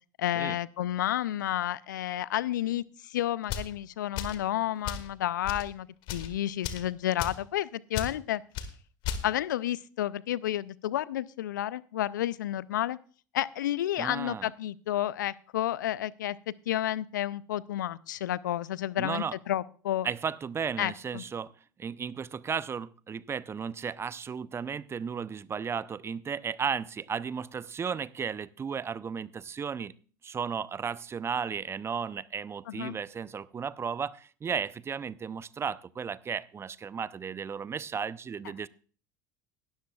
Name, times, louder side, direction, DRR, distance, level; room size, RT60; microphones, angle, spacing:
voice 1, 0.2-8.4 9.2-13.0 13.3-16.4 16.7-20.1 20.8-21.2 32.7-33.0, left 12 dB, 80° left, 21 dB, 0.4 m, -31 dB
sound 1, 3.4-3.7 4.1-4.4 4.8-5.1 5.4-5.7 6.0-6.3 6.6-6.9 7.2-7.4 7.9-8.1 8.5-8.7 9.0-9.2, left 8 dB, 55° left, 1.6 m, -34 dB
voice 2, 14.0-14.5 19.0-19.3 20.0-21.5 21.8-29.9 30.2-38.7, right 6 dB, 25° right, 19 dB, 0.6 m, -34 dB
17.5 x 13.0 x 2.4 m, 0.39 s
hypercardioid pair, 75°, 10 cm